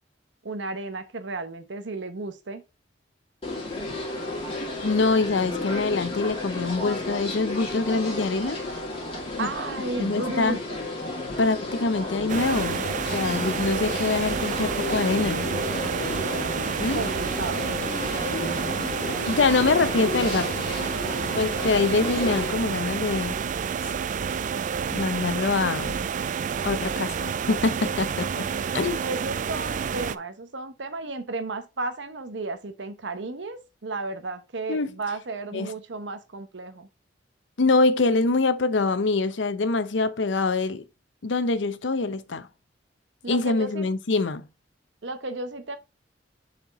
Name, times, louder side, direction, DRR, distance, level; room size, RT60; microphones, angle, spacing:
voice 1, 0.4-2.6 9.4-10.8 16.9-17.7 29.0-36.9 43.2-43.9 45.0-45.8, right 3 dB, 80° right, 0.9 m, -33 dB
sound 1, 3.4-22.5, left 2 dB, 30° left, 2.3 m, -32 dB
voice 2, 4.8-8.6 9.4-9.5 10.0-10.6 11.4-12.8 13.1-15.5 16.8-17.0 19.3-20.7 21.4-23.4 24.9-26.0 26.6-28.5 28.7-29.0 34.7-34.9 35.5-35.7 37.6-40.9 41.2-42.5 43.3-44.5, left 3 dB, 80° left, 0.7 m, -24 dB
sound 2, 12.3-30.2, right 6 dB, 45° right, 0.3 m, -29 dB
7.1 x 4.4 x 3.6 m
head